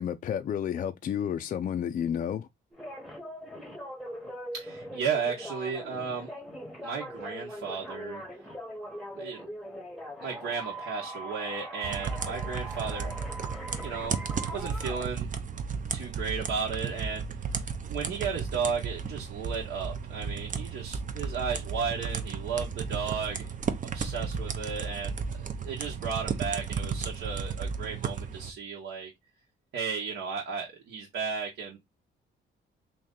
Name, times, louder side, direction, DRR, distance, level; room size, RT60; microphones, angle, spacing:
voice 1, 0.0-2.5, left 9 dB, 40° left, 0.4 m, -31 dB
sound 1, 2.7-15.1, equal, ahead, 0.9 m, -41 dB
voice 2, 4.5-6.3 6.8-8.2 9.1-9.6 10.2-13.2 13.8-14.2 14.4-15.3 15.9-17.2 17.8-23.5 23.9-29.1 29.7-31.8, right 6 dB, 70° right, 1.1 m, -34 dB
sound 2, 11.8-28.5, right 5 dB, 40° right, 0.6 m, -34 dB
3.0 x 2.6 x 3.6 m
cardioid pair, 90°, 20 cm